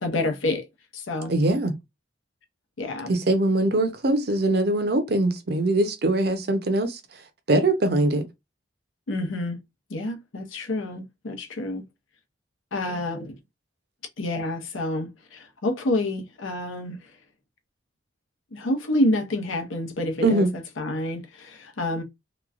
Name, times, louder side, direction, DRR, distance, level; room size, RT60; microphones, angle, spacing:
voice 1, 0.0-0.7 0.9-1.3 2.8-3.1 9.1-9.6 9.9-11.8 12.7-13.4 14.2-17.0 18.5-20.4 20.8-22.0, left 1 dB, 80° left, 0.7 m, -28 dB
voice 2, 1.3-1.7 3.1-7.0 7.5-8.2 20.2-20.5, right 2 dB, 50° right, 0.6 m, -22 dB
3.0 x 2.2 x 2.4 m
head